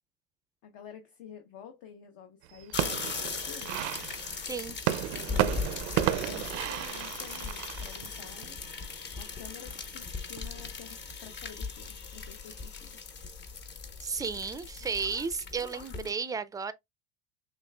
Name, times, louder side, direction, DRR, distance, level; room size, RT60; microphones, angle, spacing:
voice 1, 0.6-3.8 5.1-8.6 9.2-13.0 15.9-16.1, left 8 dB, 65° left, 0.8 m, -49 dB
sound 1, 2.4-9.0 9.4-10.0 10.4-11.0, right 14 dB, 90° right, 0.5 m, -33 dB
sound 2, 2.7-16.1, left 5 dB, 35° left, 0.8 m, -39 dB
voice 2, 14.0-16.7, right 5 dB, 10° right, 0.3 m, -33 dB
6.0 x 2.4 x 2.2 m
supercardioid pair, 105°, 33 cm